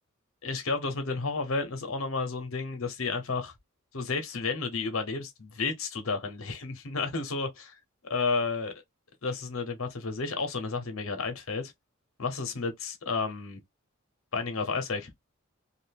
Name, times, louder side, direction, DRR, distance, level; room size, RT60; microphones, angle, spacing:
voice 1, 0.4-3.5 3.9-7.7 8.1-8.7 9.2-11.7 12.2-13.6 14.3-15.1, left 4 dB, 70° left, 0.9 m, -31 dB
2.6 x 2.6 x 3.4 m
head